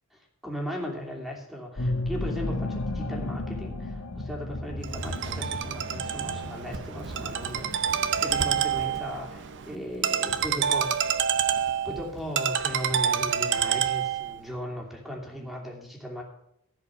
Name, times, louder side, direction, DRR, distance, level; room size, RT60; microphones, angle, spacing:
voice 1, 0.1-11.1 11.5-11.6 11.8-16.2, equal, ahead, -1 dB, 2.7 m, -37 dB
sound 1, 1.8-8.8, left 2 dB, 75° left, 1.3 m, -34 dB
Ringtone, 4.8-14.4, right 8 dB, 60° right, 0.7 m, -28 dB
15.0 x 5.2 x 7.8 m, 0.78 s
head